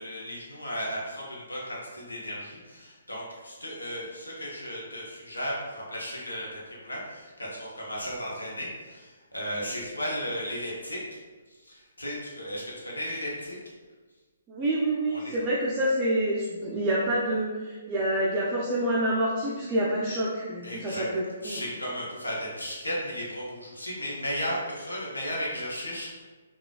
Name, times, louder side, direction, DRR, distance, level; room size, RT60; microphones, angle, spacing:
voice 1, 0.0-11.2 11.5-13.6 15.1-15.4 20.6-21.1 21.4-26.2, equal, 85° left, -4 dB, 0.8 m, -35 dB
voice 2, 14.5-21.6, right 1 dB, 20° right, -7 dB, 0.5 m, -27 dB
3.9 x 2.3 x 2.3 m, 1.3 s
figure-of-eight pair, 135°, 0 cm